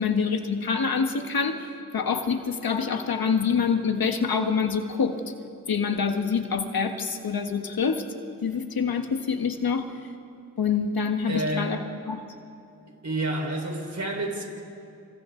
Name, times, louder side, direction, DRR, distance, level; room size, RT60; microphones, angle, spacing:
voice 1, 0.0-1.7 1.9-5.2 5.7-8.0 8.4-9.9 10.6-11.8 12.1-12.2, left 6 dB, 85° left, 6 dB, 1.6 m, -26 dB
voice 2, 11.3-11.7 13.0-14.4, right 1 dB, 50° right, 1 dB, 4.8 m, -29 dB
28.0 x 27.5 x 3.9 m, 2.6 s
cardioid pair, 50°, 35 cm